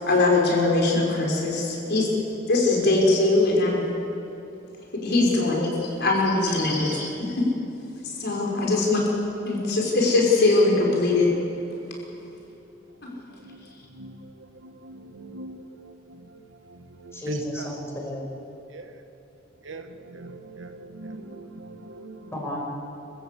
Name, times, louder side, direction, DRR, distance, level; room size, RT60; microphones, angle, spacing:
voice 1, 0.0-2.1 2.5-3.9 5.0-7.1 7.3-7.4 8.0-9.0 9.4-11.3, left 2 dB, 60° left, -1 dB, 5.0 m, -21 dB
voice 2, 6.7-7.1 8.6-8.8 13.1-17.7 18.7-19.0 19.6-22.5, right 2 dB, 70° right, 7 dB, 1.4 m, -41 dB
voice 3, 17.1-18.3 22.3-22.6, equal, 15° left, -2 dB, 5.8 m, -33 dB
26.5 x 15.5 x 8.3 m, 3.0 s
head